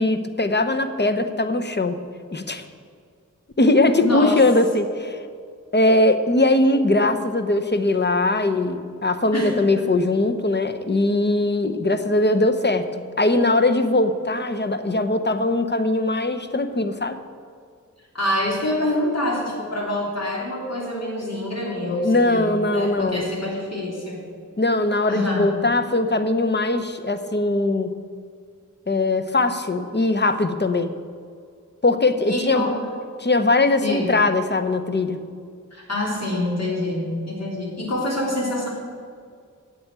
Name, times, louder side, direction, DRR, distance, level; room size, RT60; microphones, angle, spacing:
voice 1, 0.0-2.0 2.3-2.6 3.6-5.2 5.7-12.9 13.2-17.2 21.8-23.2 24.6-28.0 28.9-30.9 31.8-32.7 33.2-35.2, left 2 dB, 35° left, 9 dB, 0.8 m, -20 dB
voice 2, 4.0-4.4 9.3-9.9 18.1-24.2 25.1-25.5 32.3-32.9 33.8-34.1 35.7-38.7, left 1 dB, 55° left, -3 dB, 3.1 m, -26 dB
7.9 x 7.8 x 8.9 m, 2.1 s
wide cardioid pair, 70°, 32 cm